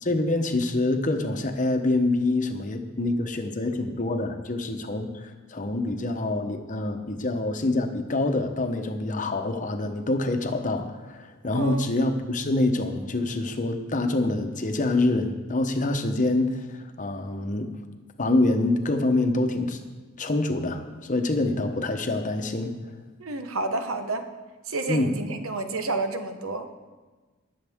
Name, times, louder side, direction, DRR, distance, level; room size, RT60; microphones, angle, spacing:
voice 1, 0.0-17.7 18.2-19.8 20.2-22.7 24.9-25.1, left 2 dB, 40° left, 6 dB, 0.9 m, -26 dB
voice 2, 11.5-11.9 23.2-24.3 24.7-26.7, right 2 dB, 85° right, 7 dB, 1.1 m, -30 dB
19.5 x 7.3 x 3.6 m, 1.3 s
head